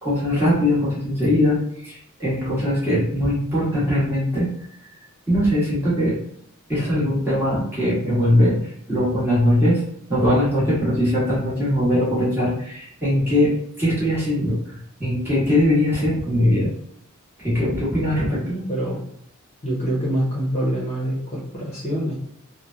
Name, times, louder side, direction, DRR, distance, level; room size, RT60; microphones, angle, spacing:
voice 1, 0.0-4.5 5.3-6.2 6.7-8.6 8.9-9.8 10.1-16.7 17.4-18.5, left 1 dB, 10° right, -9 dB, 1.2 m, -21 dB
voice 2, 18.4-19.0 19.6-22.1, right 1 dB, 30° left, -6 dB, 0.8 m, -25 dB
3.1 x 2.2 x 2.5 m, 0.67 s
head